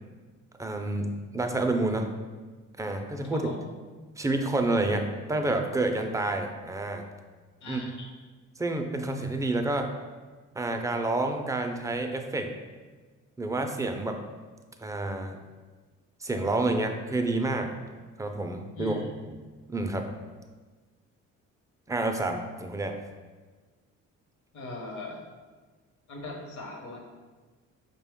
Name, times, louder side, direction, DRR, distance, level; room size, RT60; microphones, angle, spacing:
voice 1, 0.6-2.1 2.8-3.5 4.2-7.0 7.7-7.8 8.6-9.9 10.6-12.5 13.4-14.2 14.8-15.4 16.2-17.7 18.2-18.9 19.7-20.1 21.9-23.0, right 2 dB, 10° right, 4 dB, 0.3 m, -29 dB
voice 2, 3.3-3.6 7.6-8.1 18.8-19.1 24.5-25.2 26.1-27.1, left 2 dB, 70° left, 0 dB, 0.9 m, -38 dB
4.8 x 2.2 x 3.5 m, 1.4 s
cardioid pair, 90°, 30 cm